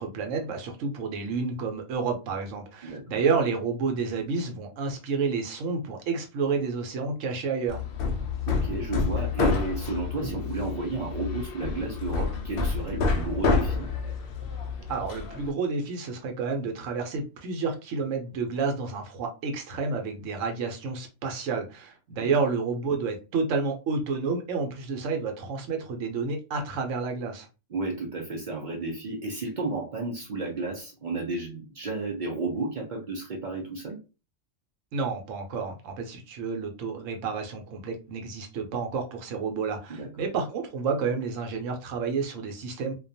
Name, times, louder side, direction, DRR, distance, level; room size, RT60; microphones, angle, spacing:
voice 1, 0.0-7.8 14.9-27.5 34.9-43.0, right 4 dB, 80° right, 4 dB, 1.0 m, -30 dB
voice 2, 2.8-3.2 8.5-13.9 22.2-22.3 27.7-34.0 39.9-40.1, right 3 dB, 55° right, -1 dB, 0.6 m, -32 dB
Hammer, 7.7-15.5, left 4 dB, 60° left, 0.6 m, -28 dB
2.4 x 2.2 x 2.6 m, 0.31 s
omnidirectional pair, 1.3 m